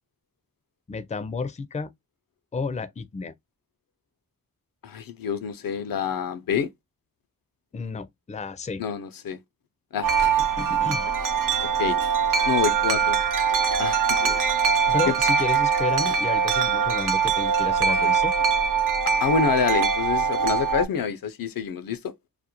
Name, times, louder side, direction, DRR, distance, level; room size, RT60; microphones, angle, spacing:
voice 1, 0.9-1.9 2.5-3.3 7.7-8.8 10.6-11.1 14.9-18.3, left 4 dB, 20° left, 0.4 m, -31 dB
voice 2, 4.8-6.7 8.8-9.4 9.9-10.1 11.8-12.0 12.5-13.2 13.8-14.4 15.1-15.2 19.2-22.1, left 7 dB, 85° left, 0.5 m, -27 dB
Wind chime, 10.0-20.9, right 6 dB, 70° right, 0.5 m, -22 dB
2.4 x 2.1 x 2.7 m
wide cardioid pair, 65°, 33 cm